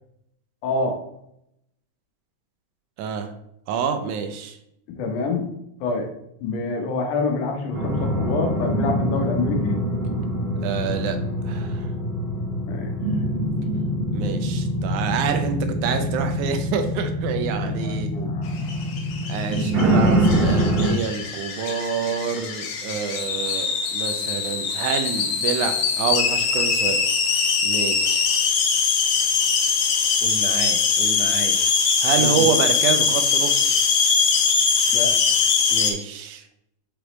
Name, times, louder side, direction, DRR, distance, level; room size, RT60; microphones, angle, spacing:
voice 1, 0.6-1.0 5.0-5.5 5.8-6.1 6.4-9.8 12.7-13.0 17.7-18.8 32.2-32.5 34.9-35.1, left 3 dB, 85° left, 2 dB, 2.5 m, -27 dB
voice 2, 3.0-3.3 3.7-4.6 10.6-11.2 11.4-11.9 14.1-18.4 19.3-27.0 27.6-28.5 30.2-31.6 32.0-33.8 35.7-36.5, right 7 dB, 80° right, 7 dB, 2.1 m, -27 dB
sound 1, 7.7-20.9, equal, 50° right, 1.6 m, -24 dB
sound 2, 18.6-35.9, left 5 dB, 70° left, 1.5 m, -22 dB
6.0 x 5.1 x 3.1 m, 0.77 s
omnidirectional pair, 3.5 m